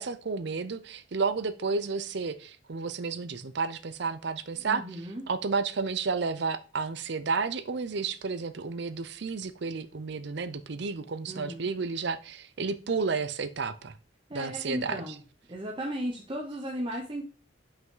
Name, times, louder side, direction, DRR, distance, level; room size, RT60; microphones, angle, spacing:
voice 1, 0.0-4.8 5.3-13.9 14.3-15.0, right 4 dB, 60° right, 12 dB, 0.6 m, -31 dB
voice 2, 4.5-5.2 11.3-11.7 14.3-15.2 15.5-17.2, equal, 25° right, -1 dB, 0.9 m, -35 dB
5.6 x 5.3 x 3.8 m, 0.35 s
head